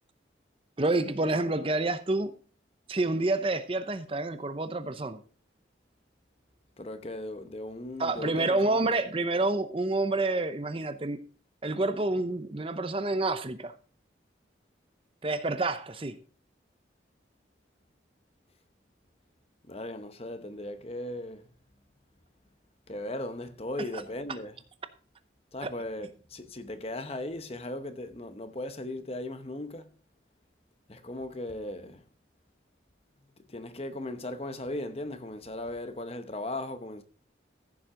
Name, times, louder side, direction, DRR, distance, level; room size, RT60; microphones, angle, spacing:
voice 1, 0.8-2.3 2.9-5.2 8.0-11.2 11.6-13.7 15.2-16.2 25.6-25.7, right 2 dB, 30° right, 0.7 m, -28 dB
voice 2, 6.8-8.9 19.7-21.5 22.9-24.6 25.5-30.0 30.9-32.0 33.5-37.0, left 1 dB, 30° left, 0.9 m, -37 dB
15.0 x 7.3 x 3.8 m
head